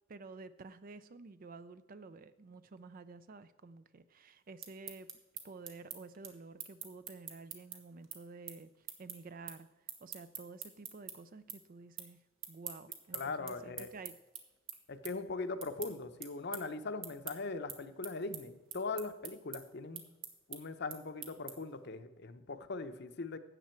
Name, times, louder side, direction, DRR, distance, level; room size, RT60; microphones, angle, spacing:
voice 1, 0.1-9.7 10.0-14.2, right 3 dB, 45° right, 13 dB, 0.5 m, -51 dB
sound 1, 4.4-11.1 11.5-12.1 12.4-21.8, right 9 dB, 80° right, 1.4 m, -46 dB
voice 2, 13.1-13.9 14.9-20.0 20.5-23.4, left 3 dB, 55° left, 10 dB, 0.8 m, -40 dB
13.0 x 8.6 x 4.5 m, 1.1 s
head